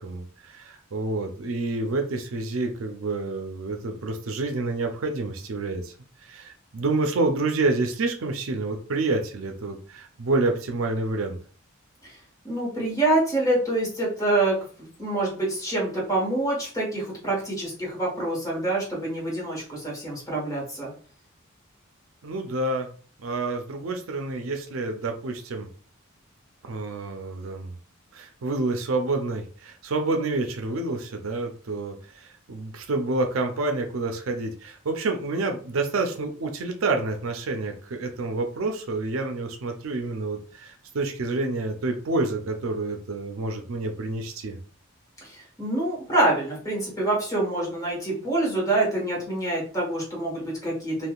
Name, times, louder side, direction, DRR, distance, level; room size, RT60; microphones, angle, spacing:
voice 1, 0.0-5.9 6.3-11.4 22.2-22.9 23.2-25.7 26.6-27.7 28.1-44.6, right 3 dB, 75° right, 4 dB, 0.5 m, -28 dB
voice 2, 12.4-20.9 45.2-51.1, right 2 dB, 15° left, -4 dB, 1.2 m, -26 dB
3.4 x 2.5 x 2.3 m, 0.42 s
head